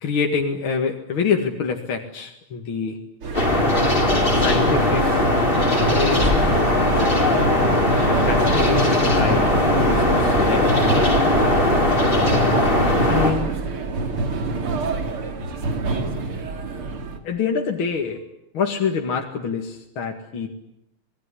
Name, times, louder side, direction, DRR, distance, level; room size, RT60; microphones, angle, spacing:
voice 1, 0.0-3.0 4.4-5.0 5.8-6.5 8.1-10.7 13.1-13.5 17.2-18.2 18.5-20.5, left 5 dB, 70° left, 2 dB, 2.9 m, -26 dB
sound 1, 3.2-17.2, right 3 dB, 80° right, 3.5 m, -26 dB
sound 2, 3.3-13.3, left 2 dB, 25° left, 4.5 m, -19 dB
27.5 x 20.5 x 9.9 m, 0.79 s
omnidirectional pair, 2.4 m